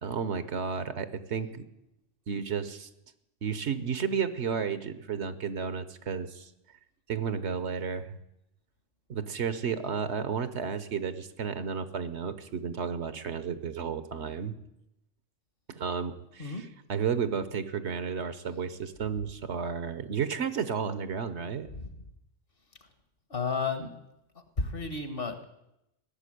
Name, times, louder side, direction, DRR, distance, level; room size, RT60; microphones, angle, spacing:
voice 1, 0.0-1.7 2.3-2.9 3.4-6.5 7.1-8.2 9.1-14.5 15.7-21.7, right 6 dB, 65° right, 13 dB, 1.2 m, -32 dB
voice 2, 23.3-23.9 24.6-25.4, left 4 dB, 50° left, 8 dB, 1.6 m, -32 dB
17.0 x 7.1 x 9.9 m, 0.84 s
omnidirectional pair, 1.3 m